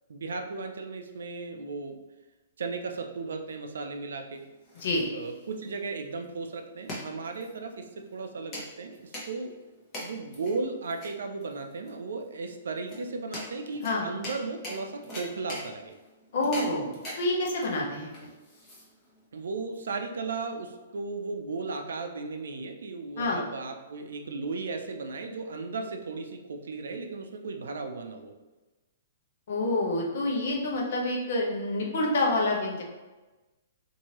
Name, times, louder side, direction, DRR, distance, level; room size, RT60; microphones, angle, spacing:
voice 1, 0.1-2.0 2.6-4.4 5.1-9.5 10.0-15.9 19.3-28.3, right 3 dB, 80° right, 5 dB, 0.4 m, -36 dB
sound 1, 4.3-19.2, left 1 dB, 30° left, 1.0 m, -43 dB
voice 2, 16.3-18.3 23.2-23.4 29.5-32.8, left 2 dB, 65° left, -2 dB, 0.8 m, -28 dB
2.8 x 2.6 x 2.9 m, 1.2 s
hypercardioid pair, 130°, 0 cm